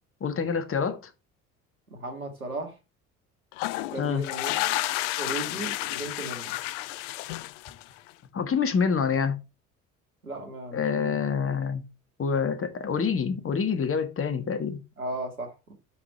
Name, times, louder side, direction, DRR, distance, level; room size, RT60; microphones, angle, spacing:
voice 1, 0.2-1.0 4.0-4.2 8.3-9.4 10.7-11.8 12.2-14.8, left 6 dB, 30° left, 1.6 m, -26 dB
voice 2, 1.9-2.8 3.9-4.5 5.2-6.5 10.2-11.2 15.0-15.7, right 2 dB, 90° right, 1.8 m, -36 dB
sound 1, 3.5-8.1, left 17 dB, 60° left, 0.6 m, -31 dB
8.0 x 5.3 x 4.1 m
figure-of-eight pair, 60°, 42 cm